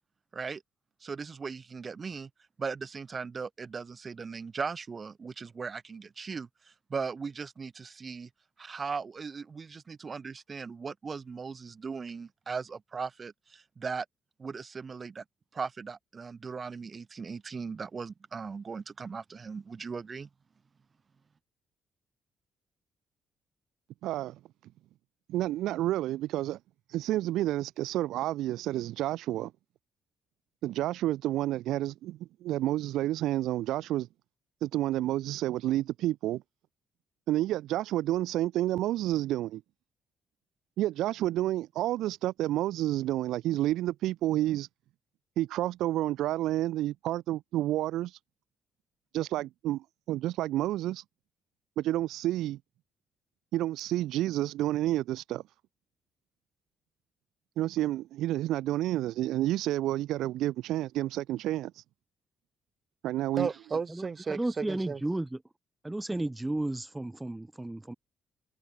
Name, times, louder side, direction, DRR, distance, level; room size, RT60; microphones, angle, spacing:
voice 1, 1.0-2.3 2.6-6.5 6.9-8.3 8.6-14.1 14.4-15.2 15.5-20.3 63.4-65.0, right 5 dB, 40° right, 0.8 m, -37 dB
voice 2, 24.0-24.4 25.3-26.6 26.9-29.5 30.6-34.1 34.6-36.4 37.3-39.6 40.8-44.7 45.4-48.1 49.1-51.0 51.8-52.6 53.5-55.4 57.6-61.7 63.0-63.5, right 14 dB, 85° right, 0.5 m, -30 dB
voice 3, 63.9-65.4 65.8-67.9, right 2 dB, 10° right, 0.3 m, -33 dB
cardioid pair, 90°, 0 cm